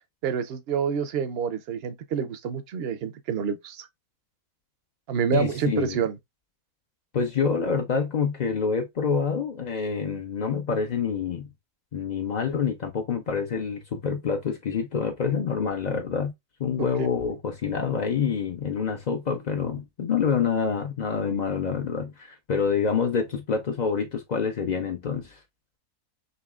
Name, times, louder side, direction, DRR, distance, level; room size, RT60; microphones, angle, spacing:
voice 1, 0.2-3.9 5.1-6.2 16.8-17.1, right 7 dB, 60° right, 0.6 m, -28 dB
voice 2, 5.3-6.0 7.1-11.5 11.9-16.3 16.6-25.4, left 6 dB, 75° left, 0.4 m, -27 dB
5.4 x 3.1 x 2.3 m
omnidirectional pair, 1.7 m